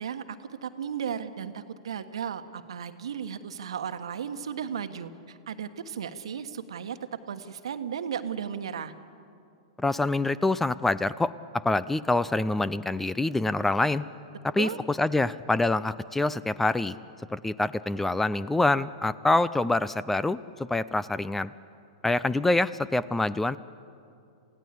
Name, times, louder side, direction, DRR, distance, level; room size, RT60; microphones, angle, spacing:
voice 1, 0.0-7.0 7.3-8.9 14.6-14.8, right 8 dB, 70° right, 10 dB, 1.3 m, -35 dB
voice 2, 9.8-14.0 14.4-17.0 17.3-21.5 22.0-23.6, left 2 dB, 10° left, 18 dB, 0.5 m, -26 dB
28.5 x 16.5 x 8.5 m, 2.5 s
hypercardioid pair, 105°, 3 cm